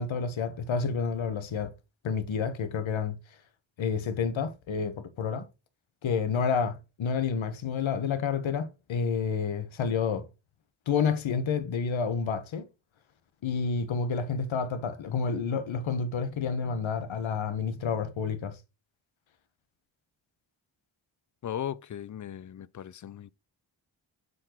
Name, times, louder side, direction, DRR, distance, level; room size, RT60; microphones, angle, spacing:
voice 1, 0.0-1.7 2.0-3.2 3.8-5.5 6.0-10.3 10.9-12.7 13.4-18.6, left 6 dB, 80° left, 1.2 m, -29 dB
voice 2, 21.4-23.3, left 10 dB, 40° left, 0.4 m, -37 dB
7.6 x 4.0 x 4.4 m
cardioid pair, 80°, 46 cm